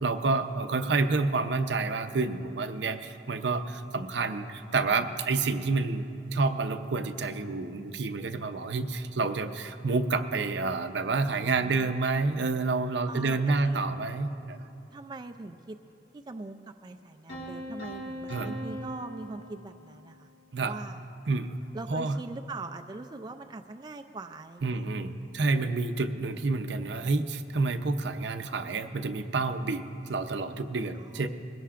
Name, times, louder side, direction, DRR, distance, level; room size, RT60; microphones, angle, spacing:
voice 1, 0.0-6.1 6.3-14.6 18.3-18.6 20.5-20.7 21.3-21.6 21.9-22.2 24.6-31.3, right 3 dB, 70° right, 8 dB, 0.6 m, -29 dB
voice 2, 11.3-11.9 13.1-13.8 14.9-15.8 16.1-20.3 20.6-21.0 21.7-24.9 30.9-31.3, right 3 dB, 25° right, 6 dB, 0.3 m, -42 dB
sound 1, 17.3-20.2, right 1 dB, 80° left, 2.9 m, -40 dB
21.0 x 17.0 x 2.5 m, 2.7 s
head